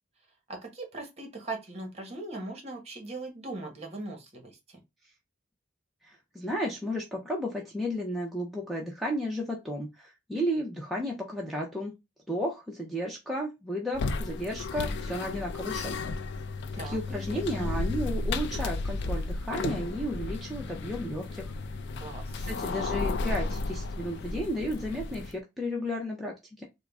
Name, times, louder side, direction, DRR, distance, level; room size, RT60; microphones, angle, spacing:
voice 1, 0.5-4.8 16.8-17.8 22.0-22.4, right 2 dB, 30° right, 1.1 m, -40 dB
voice 2, 6.0-11.9 12.3-15.9 16.8-21.5 22.4-26.6, equal, ahead, 0.5 m, -33 dB
sound 1, 13.9-25.4, left 3 dB, 60° left, 0.4 m, -33 dB
3.6 x 2.0 x 3.5 m
head